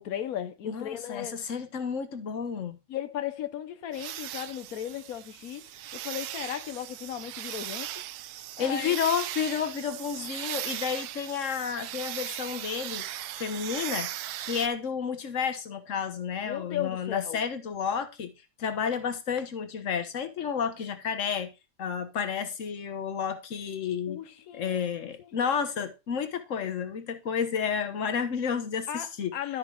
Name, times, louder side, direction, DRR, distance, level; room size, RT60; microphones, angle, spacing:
voice 1, 0.0-1.4 2.9-7.9 8.6-9.0 16.4-17.4 24.1-24.9 25.2-25.3 28.9-29.6, left 11 dB, 70° left, 0.8 m, -36 dB
voice 2, 0.6-2.8 8.6-13.0 13.4-14.1 14.4-18.3 18.6-21.5 21.8-24.2 24.5-29.3, left 7 dB, 45° left, 1.2 m, -31 dB
sound 1, 3.9-14.7, right 13 dB, 85° right, 1.5 m, -38 dB
12.5 x 4.6 x 4.9 m
omnidirectional pair, 2.3 m